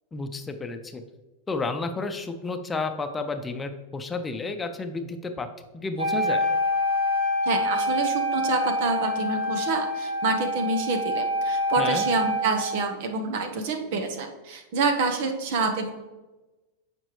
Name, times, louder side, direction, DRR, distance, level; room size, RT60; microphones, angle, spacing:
voice 1, 0.1-1.0 1.5-5.5 5.7-6.5 11.8-12.1, left 3 dB, 20° left, 7 dB, 0.7 m, -31 dB
Wind instrument woodwind instrument, 6.0-12.9, equal, 85° right, 2.0 m, -26 dB
voice 2, 7.4-15.9, right 3 dB, 65° right, 6 dB, 1.1 m, -27 dB
8.9 x 5.3 x 3.2 m, 1.1 s
hypercardioid pair, 110°, 0 cm